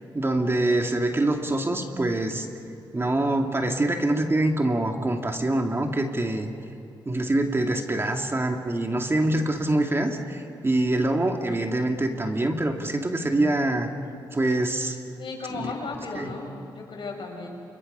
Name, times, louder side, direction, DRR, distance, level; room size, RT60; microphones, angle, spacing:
voice 1, 0.1-2.5 2.9-6.5 7.1-13.9 14.3-15.0 15.6-15.7 16.1-16.3, right 1 dB, 25° right, 3 dB, 2.3 m, -25 dB
voice 2, 15.2-16.5 16.7-17.5, left 4 dB, 60° left, 0 dB, 6.8 m, -35 dB
28.5 x 26.0 x 5.5 m, 2.7 s
cardioid pair, 65°, 9 cm